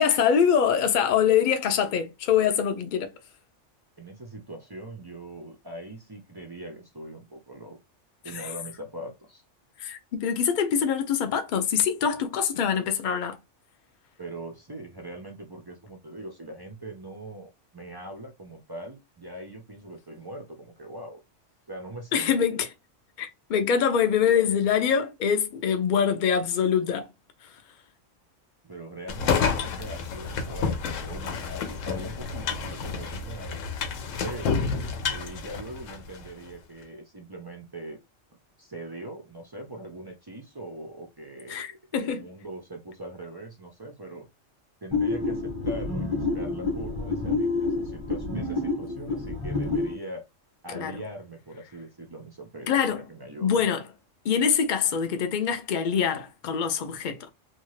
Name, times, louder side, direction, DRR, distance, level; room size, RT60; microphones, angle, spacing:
voice 1, 0.0-3.1 8.3-8.5 9.8-13.4 22.1-22.7 23.2-27.1 41.5-42.3 50.7-51.0 52.7-53.0 53.4-53.9 54.2-57.3, left 7 dB, 55° left, 0.6 m, -24 dB
voice 2, 4.0-7.8 8.2-9.4 14.2-21.2 21.7-22.3 24.2-24.4 28.6-33.7 34.2-34.6 35.1-38.0 38.6-41.7 42.0-44.3 44.8-50.2 50.6-53.6, right 1 dB, 35° right, 0.3 m, -41 dB
sound 1, 29.1-36.3, left 5 dB, 90° left, 1.0 m, -29 dB
sound 2, 44.9-50.0, left 3 dB, 25° left, 0.8 m, -28 dB
2.8 x 2.3 x 3.1 m
omnidirectional pair, 1.3 m